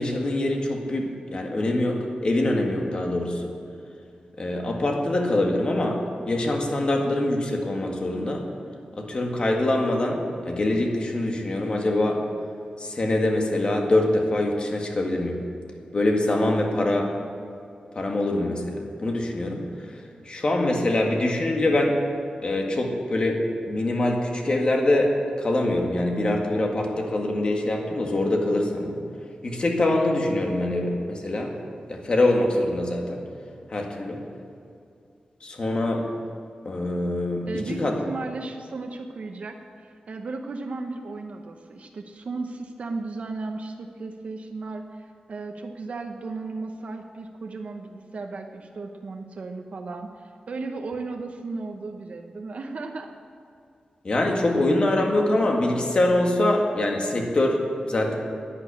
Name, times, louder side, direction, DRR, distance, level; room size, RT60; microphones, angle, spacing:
voice 1, 0.0-3.5 4.4-8.4 9.0-10.2 10.5-12.2 12.8-15.4 15.9-17.1 18.0-19.6 20.3-22.0 22.4-25.1 25.4-28.9 29.4-31.5 31.9-33.2 33.7-34.2 35.4-36.0 36.7-37.9 54.0-57.6 57.9-58.2, left 1 dB, 40° left, 1 dB, 1.8 m, -24 dB
voice 2, 37.5-53.1, right 3 dB, 60° right, 3 dB, 0.8 m, -35 dB
11.5 x 9.8 x 8.4 m, 2.5 s
wide cardioid pair, 160°, 3 cm